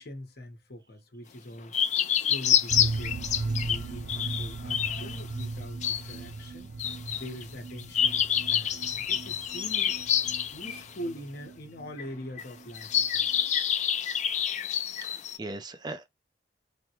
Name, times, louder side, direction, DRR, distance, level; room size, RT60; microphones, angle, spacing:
voice 1, 0.0-6.7 7.1-10.0 10.5-13.0, equal, 60° left, 1.0 m, -43 dB
sound 1, 1.7-3.8 4.1-5.4 5.8-6.2 6.8-7.4 7.8-10.9 12.0-12.1 12.4-12.5 12.7-15.4, left 9 dB, 40° left, 0.4 m, -27 dB
sound 2, 2.7-12.3 12.6-12.7 12.9-13.0, right 3 dB, 75° right, 0.5 m, -37 dB
voice 2, 15.0-16.1, right 2 dB, 25° right, 0.5 m, -39 dB
3.4 x 2.2 x 2.8 m
head